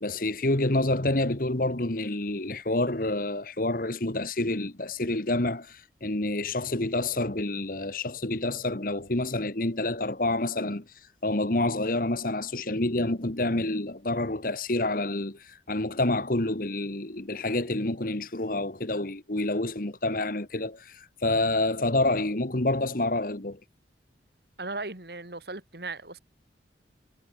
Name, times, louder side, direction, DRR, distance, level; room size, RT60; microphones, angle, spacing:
voice 1, 0.0-10.8 11.2-23.6, left 2 dB, 50° left, 1.7 m, -28 dB
voice 2, 24.6-26.2, right 3 dB, 60° right, 2.9 m, -37 dB
head